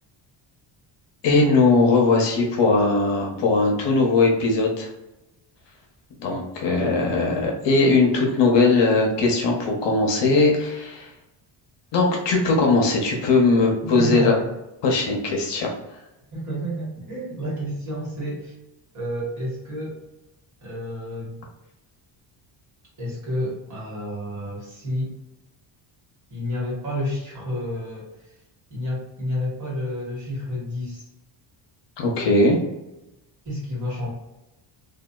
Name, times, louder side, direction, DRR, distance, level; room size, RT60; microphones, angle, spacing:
voice 1, 1.2-4.9 6.2-11.1 11.9-14.3 14.8-15.7 32.0-32.6, left 3 dB, 60° left, 0 dB, 0.7 m, -19 dB
voice 2, 13.9-14.5 16.3-18.5 18.9-20.0 20.6-21.4 23.0-25.1 26.3-28.1 28.7-31.0 33.4-34.1, equal, 40° right, -5 dB, 1.3 m, -30 dB
2.7 x 2.3 x 2.2 m, 0.95 s
cardioid pair, 165°, 48 cm